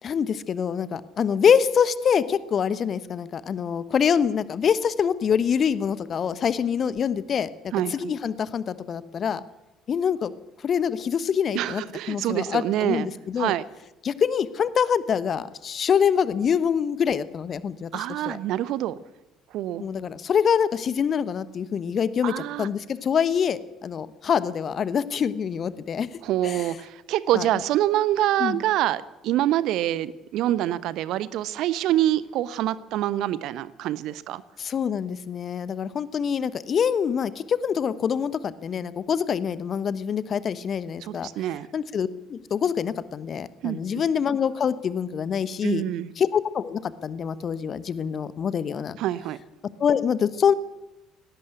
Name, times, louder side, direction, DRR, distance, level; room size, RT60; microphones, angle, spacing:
voice 1, 0.0-9.4 9.9-10.3 10.6-11.8 12.1-13.5 14.0-18.4 19.8-22.3 22.6-26.1 26.4-26.7 27.3-27.5 28.4-28.6 34.6-41.3 41.7-45.8 46.2-49.0 49.8-50.5, left 7 dB, 45° left, 16 dB, 1.2 m, -25 dB
voice 2, 7.7-8.1 11.5-13.1 13.4-13.6 17.9-19.0 19.5-19.8 22.2-22.7 26.2-34.4 41.0-41.7 43.6-44.0 45.6-46.1 49.0-49.4, right 13 dB, 60° right, 17 dB, 0.9 m, -26 dB
18.5 x 17.5 x 8.2 m, 0.99 s
figure-of-eight pair, 50°, 0 cm